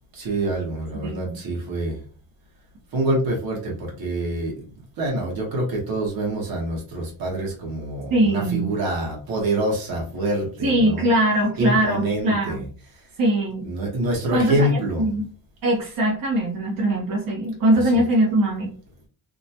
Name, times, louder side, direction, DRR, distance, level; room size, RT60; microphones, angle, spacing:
voice 1, 0.1-2.0 2.9-4.5 5.0-11.1 11.6-12.6 13.6-15.1, right 1 dB, 85° right, -1 dB, 1.3 m, -26 dB
voice 2, 1.0-1.4 8.1-8.7 10.6-12.6 13.2-13.7 14.3-15.3 15.6-18.7, right 1 dB, 65° right, -4 dB, 1.0 m, -21 dB
2.9 x 2.3 x 2.7 m, 0.41 s
cardioid pair, 155°, 35 cm